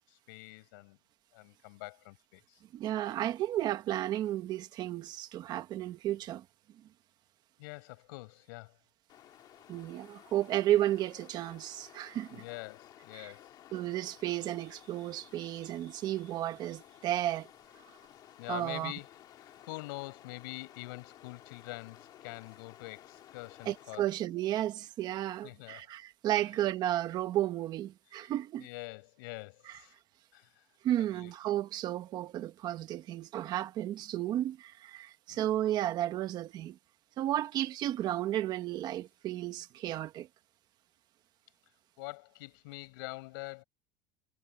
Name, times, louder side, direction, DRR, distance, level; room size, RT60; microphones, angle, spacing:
voice 1, 0.1-1.0 1.3-2.6 7.6-8.8 12.3-13.5 18.4-24.1 25.4-25.9 28.2-28.3 28.6-29.9 30.3-30.6 31.1-31.3 35.3-35.5 42.0-43.6, left 24 dB, 85° left, 5.1 m, -45 dB
voice 2, 2.7-6.4 9.7-12.4 13.1-13.3 13.7-17.5 18.5-18.9 23.6-28.7 29.7-29.8 30.8-36.8 37.2-40.3, right 13 dB, 40° right, 1.4 m, -33 dB
Stream, 9.1-24.2, left 12 dB, 40° left, 1.9 m, -56 dB
cardioid pair, 160°, 11 cm